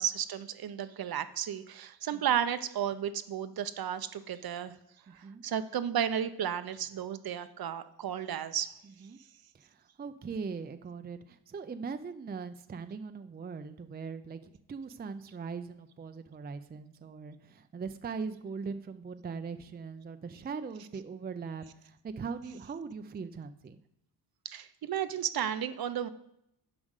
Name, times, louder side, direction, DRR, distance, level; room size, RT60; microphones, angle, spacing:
voice 1, 0.0-4.7 5.1-8.7 24.4-26.1, right 9 dB, 55° right, 11 dB, 0.7 m, -33 dB
voice 2, 10.0-14.4 14.7-23.8, right 5 dB, 20° right, 9 dB, 0.5 m, -40 dB
7.3 x 5.1 x 6.5 m, 0.79 s
cardioid pair, 75°, 44 cm